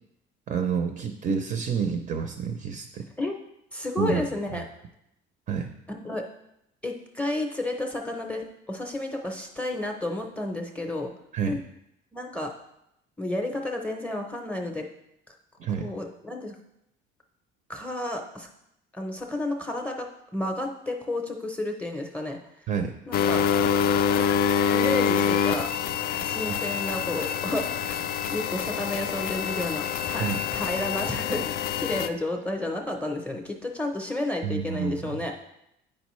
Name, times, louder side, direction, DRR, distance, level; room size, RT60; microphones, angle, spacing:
voice 1, 0.5-3.0 4.0-4.3 4.5-4.6 5.5-5.7 11.3-11.6 15.6-15.9 22.7-22.9 26.5-26.6 30.2-30.4 34.4-35.2, right 6 dB, 40° right, 6 dB, 0.5 m, -29 dB
voice 2, 3.7-4.6 5.9-6.2 6.8-11.1 11.5-11.6 12.1-12.5 13.2-14.8 15.7-16.6 17.7-18.5 18.9-20.1 20.3-22.4 23.1-23.4 24.7-25.7 26.2-35.3, left 1 dB, 5° left, 2 dB, 0.6 m, -31 dB
sound 1, 23.1-32.1, left 8 dB, 50° left, 0.4 m, -26 dB
8.7 x 5.3 x 3.1 m, 0.81 s
cardioid pair, 155°, 21 cm